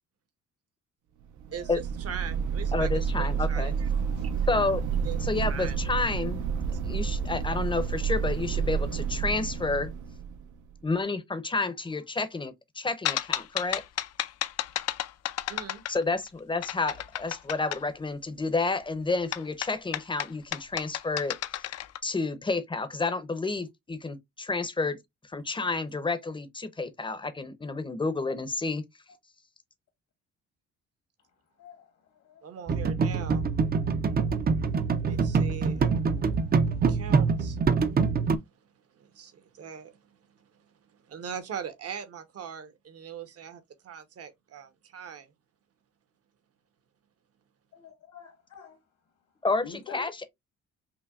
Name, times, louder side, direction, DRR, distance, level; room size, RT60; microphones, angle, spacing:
sound 1, 1.4-10.7, right 6 dB, 75° right, 0.7 m, -30 dB
voice 1, 1.5-3.9 4.2-4.3 5.0-5.8 15.5-15.8 32.4-33.5 35.0-35.9 36.7-37.6 38.9-40.7 41.1-45.3, right 8 dB, 50° right, 0.9 m, -41 dB
voice 2, 2.7-3.7 4.5-4.8 5.2-6.5 6.8-9.9 10.8-13.8 15.9-21.4 22.0-25.0 25.2-28.8 49.4-50.3, left 3 dB, 15° left, 0.6 m, -30 dB
sound 2, 13.0-16.3 16.6-17.8 19.3-22.0, left 12 dB, 55° left, 0.5 m, -32 dB
sound 3, 32.7-38.4, right 5 dB, 30° right, 0.5 m, -25 dB
voice 3, 47.7-48.8 49.6-50.1, left 7 dB, 80° left, 1.6 m, -46 dB
5.7 x 2.2 x 2.4 m
cardioid pair, 90°, 30 cm